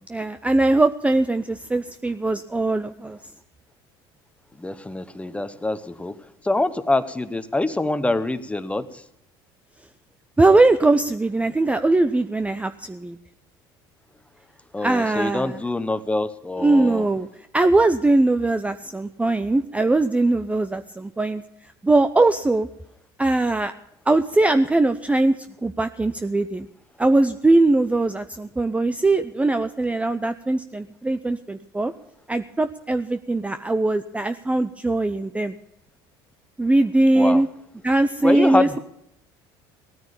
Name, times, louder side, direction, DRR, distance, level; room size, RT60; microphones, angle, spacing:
voice 1, 0.1-3.2 10.4-13.2 14.8-15.6 16.6-17.3 17.5-21.4 21.8-22.7 23.2-23.7 24.1-25.3 25.6-26.7 27.0-31.9 32.3-35.6 36.6-37.5 37.8-38.8, right 2 dB, 10° right, 10 dB, 0.7 m, -20 dB
voice 2, 4.6-6.2 6.4-9.0 14.7-17.1 37.1-37.4 38.2-38.8, left 2 dB, 10° left, 13 dB, 1.1 m, -25 dB
16.5 x 9.6 x 7.0 m, 0.78 s
supercardioid pair, 85°, 12 cm